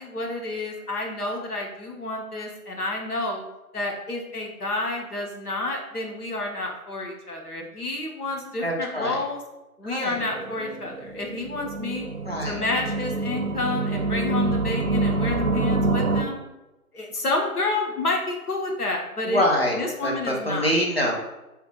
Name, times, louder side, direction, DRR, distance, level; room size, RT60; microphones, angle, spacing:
voice 1, 0.0-3.4 3.7-9.4 9.8-12.1 12.4-16.4 16.9-19.4 19.7-20.7, left 2 dB, 80° left, 0 dB, 1.2 m, -29 dB
voice 2, 8.6-9.2 9.8-10.2 12.3-12.6 19.3-21.2, equal, 45° left, -1 dB, 0.8 m, -25 dB
sound 1, 10.1-16.2, right 2 dB, 65° right, 0.7 m, -26 dB
3.4 x 2.4 x 4.5 m, 1.0 s
figure-of-eight pair, 180°, 45 cm